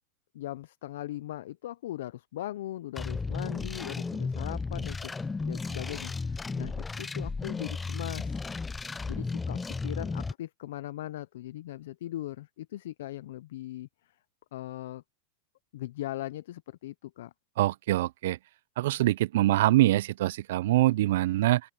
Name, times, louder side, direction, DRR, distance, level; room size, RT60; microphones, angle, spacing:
voice 1, 0.3-8.5 9.1-13.9 14.5-15.0 15.7-17.3, left 14 dB, 75° left, 0.4 m, -39 dB
sound 1, 3.0-10.3, left 4 dB, 10° left, 0.4 m, -34 dB
voice 2, 17.6-18.4 18.8-21.6, right 16 dB, 70° right, 0.3 m, -24 dB
open air
supercardioid pair, 150°, 0 cm